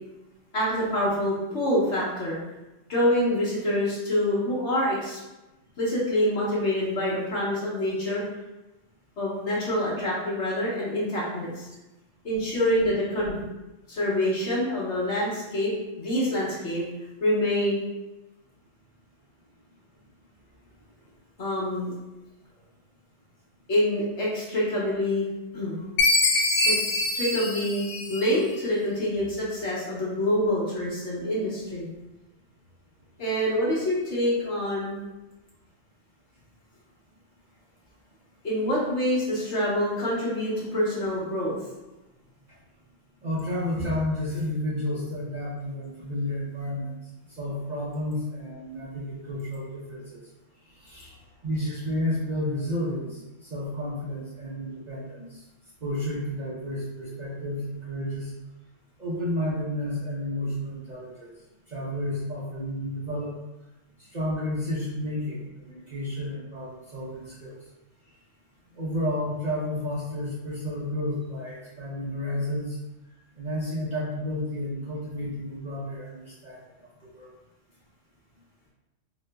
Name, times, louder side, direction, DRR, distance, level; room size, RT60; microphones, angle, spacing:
voice 1, 0.5-2.4 2.9-5.2 5.8-8.2 9.2-11.7 12.2-13.4 13.9-16.8 17.2-17.8 21.4-21.9 23.7-25.3 25.5-25.8 26.6-31.9 33.2-35.0 38.4-41.6, left 1 dB, 65° left, -6 dB, 1.3 m, -26 dB
Chime, 26.0-28.5, left 2 dB, 80° left, 1.1 m, -24 dB
voice 2, 43.2-46.9 47.3-50.2 50.7-51.2 51.4-55.4 55.8-58.3 59.0-61.3 61.7-63.4 64.0-67.5 68.7-72.8 73.4-76.6 77.0-77.3, left 1 dB, 45° right, -8 dB, 0.6 m, -31 dB
3.7 x 3.0 x 2.2 m, 1.0 s
omnidirectional pair, 1.3 m